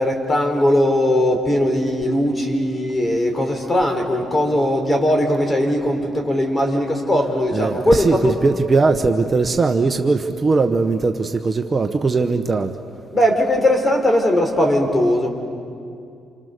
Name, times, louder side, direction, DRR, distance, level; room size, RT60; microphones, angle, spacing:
voice 1, 0.0-8.4 13.1-15.3, left 1 dB, 25° left, 3 dB, 4.4 m, -19 dB
voice 2, 7.5-12.7, right 4 dB, 30° right, 6 dB, 1.2 m, -19 dB
29.0 x 27.5 x 6.9 m, 2.4 s
cardioid pair, 90°, 0 cm